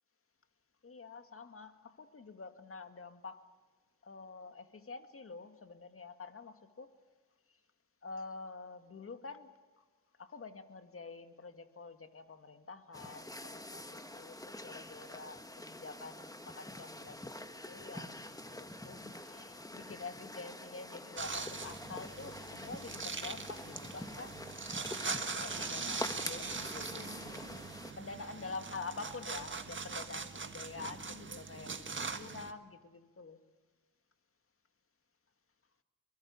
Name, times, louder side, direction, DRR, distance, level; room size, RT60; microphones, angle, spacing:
voice 1, 0.8-3.5 4.0-6.9 7.5-7.6 8.0-9.8 10.2-24.4 24.9-27.5 28.0-33.4, left 4 dB, 40° left, 8 dB, 2.0 m, -48 dB
sound 1, 12.9-27.9, left 1 dB, 10° left, 1.7 m, -46 dB
sound 2, 21.2-32.5, right 4 dB, 35° right, 1.6 m, -41 dB
23.0 x 22.0 x 7.1 m, 1.4 s
supercardioid pair, 55°, 35 cm